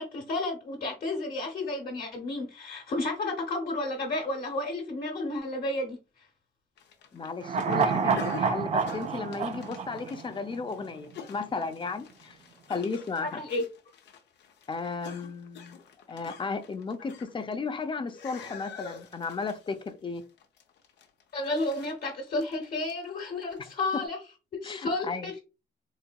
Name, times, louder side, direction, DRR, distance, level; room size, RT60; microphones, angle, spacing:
voice 1, 0.0-6.0 13.2-13.6 21.3-24.2 24.6-25.4, left 2 dB, 60° left, 1.0 m, -32 dB
sound 1, 6.8-17.8 18.1-24.0, left 6 dB, 85° left, 0.7 m, -47 dB
voice 2, 7.1-12.4 12.7-13.4 14.7-15.8 16.1-20.2 23.6-23.7 23.9-24.0 24.6-25.3, left 4 dB, 30° left, 0.4 m, -34 dB
sound 2, 7.4-10.8 11.1-11.2, right 5 dB, 40° right, 0.4 m, -28 dB
4.0 x 2.7 x 2.2 m
cardioid pair, 115°, 17 cm